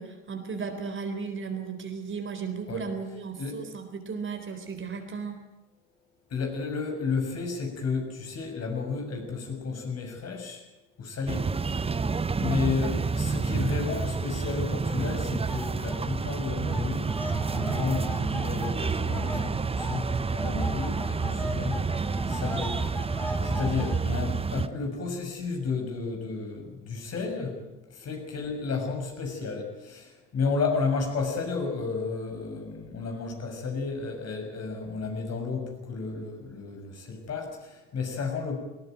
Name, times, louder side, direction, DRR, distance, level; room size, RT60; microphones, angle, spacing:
voice 1, 0.0-5.4 12.3-12.6, right 5 dB, 35° right, 6 dB, 4.0 m, -35 dB
voice 2, 6.3-10.6 11.0-11.5 12.4-17.1 17.5-20.1 20.4-21.9 22.3-22.8 23.4-27.6 27.9-38.6, left 4 dB, 45° left, 3 dB, 6.7 m, -32 dB
sound 1, 11.3-24.7, right 4 dB, 15° right, 1.0 m, -29 dB
sound 2, 15.5-16.0 16.3-24.3, left 1 dB, 5° left, 3.7 m, -39 dB
19.5 x 18.0 x 9.3 m, 1.0 s
hypercardioid pair, 65°, 36 cm